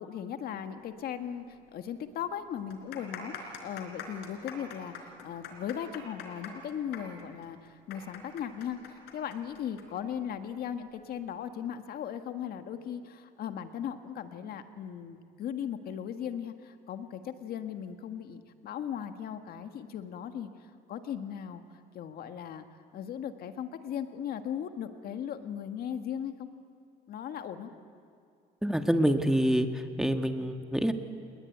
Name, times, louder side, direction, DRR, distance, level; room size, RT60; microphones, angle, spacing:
voice 1, 0.0-21.6 21.9-22.6 22.9-26.5 27.1-27.7, left 9 dB, 65° left, 8 dB, 1.7 m, -38 dB
sound 1, 1.5-1.6 1.9-2.0 2.6-9.8 10.1-10.2 11.0-11.3, left 7 dB, 85° left, 4.3 m, -44 dB
voice 2, 28.6-30.9, equal, 5° right, 6 dB, 1.7 m, -26 dB
29.0 x 20.5 x 9.3 m, 2.3 s
cardioid pair, 110°, 17 cm